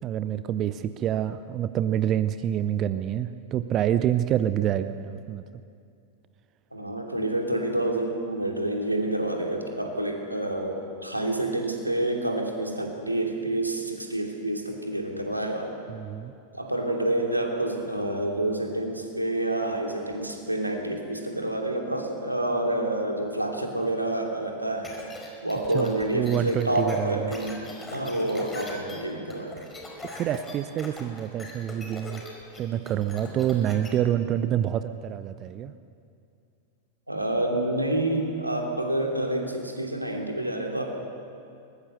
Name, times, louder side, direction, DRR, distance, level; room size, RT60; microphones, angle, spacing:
voice 1, 0.0-5.4 15.9-16.3 25.7-27.3 30.1-32.2 32.6-35.7, right 11 dB, 35° right, 12 dB, 0.7 m, -27 dB
voice 2, 6.7-15.7 16.5-24.9 25.4-27.6 27.9-29.6 37.1-40.8, right 1 dB, 85° right, 1 dB, 2.8 m, -28 dB
sound 1, 24.8-33.9, left 2 dB, 10° left, 4.7 m, -41 dB
22.5 x 20.0 x 6.7 m, 2.5 s
figure-of-eight pair, 90°, 0 cm